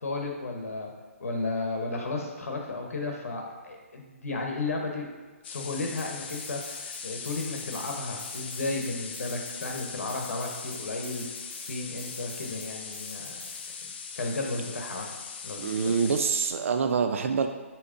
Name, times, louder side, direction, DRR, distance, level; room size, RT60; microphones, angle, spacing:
voice 1, 0.0-0.9 1.2-5.1 5.5-11.2 11.7-13.4 14.2-15.1 15.4-16.0, left 2 dB, 85° left, 1 dB, 0.9 m, -33 dB
sound 1, 5.4-16.5, left 6 dB, 45° left, 0.4 m, -40 dB
sound 2, 6.0-7.0 7.2-14.1, right 2 dB, 30° right, 1.1 m, -48 dB
voice 2, 15.6-17.5, right 6 dB, 65° right, 6 dB, 0.4 m, -26 dB
6.6 x 2.9 x 2.5 m, 1.4 s
hypercardioid pair, 155°, 8 cm